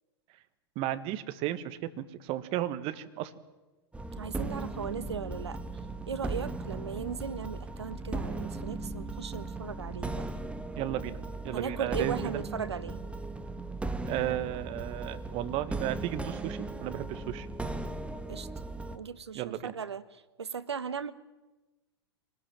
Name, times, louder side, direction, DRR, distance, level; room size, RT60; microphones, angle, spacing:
voice 1, 0.7-3.3 10.8-11.2 11.4-12.4 14.1-17.5 19.3-19.7, right 13 dB, 45° right, 12 dB, 1.8 m, -34 dB
sound 1, 3.9-19.0, right 3 dB, 10° right, 1.7 m, -37 dB
voice 2, 4.2-5.6 6.1-10.3 11.5-13.0 18.3-18.5 18.9-21.1, right 6 dB, 80° right, 14 dB, 1.4 m, -37 dB
25.5 x 19.5 x 9.2 m, 1.1 s
figure-of-eight pair, 95°, 14 cm